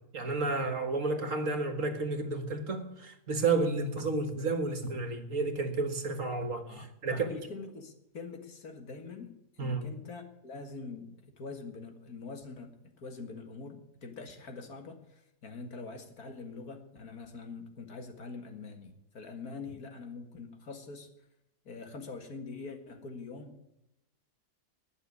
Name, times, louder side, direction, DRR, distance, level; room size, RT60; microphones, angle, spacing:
voice 1, 0.1-7.4 9.6-10.0, right 3 dB, 55° right, 1.9 m, -31 dB
voice 2, 6.7-21.1 21.7-23.6, left 4 dB, 65° left, 2.3 m, -44 dB
20.0 x 6.8 x 9.4 m
omnidirectional pair, 1.7 m